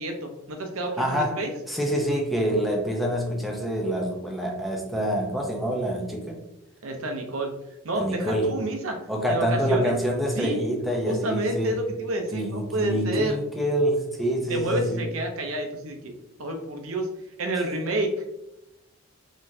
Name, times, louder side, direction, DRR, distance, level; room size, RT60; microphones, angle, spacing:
voice 1, 0.0-1.5 6.8-7.5 7.8-9.0 9.3-9.9 10.3-10.6 11.1-13.4 14.5-17.1 17.4-18.1, right 1 dB, 70° right, 4 dB, 0.6 m, -29 dB
voice 2, 1.0-6.4 8.0-8.6 9.1-11.8 12.3-15.1, equal, ahead, -1 dB, 0.6 m, -26 dB
4.0 x 3.0 x 2.6 m, 0.89 s
head